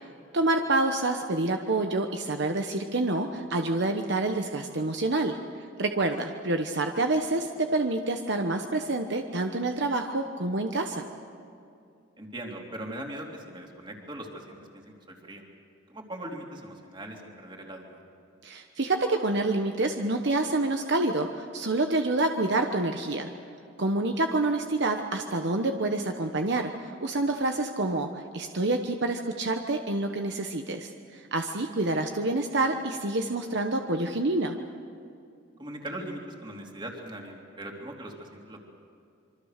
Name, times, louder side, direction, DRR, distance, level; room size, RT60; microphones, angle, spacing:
voice 1, 0.3-5.4 5.8-11.0 18.4-23.3 23.8-30.9 31.3-34.6, right 2 dB, 65° right, 5 dB, 1.1 m, -27 dB
voice 2, 12.2-15.4 15.9-18.0 35.6-38.6, right 1 dB, 25° right, 0 dB, 3.3 m, -40 dB
26.0 x 24.0 x 6.7 m, 2.5 s
head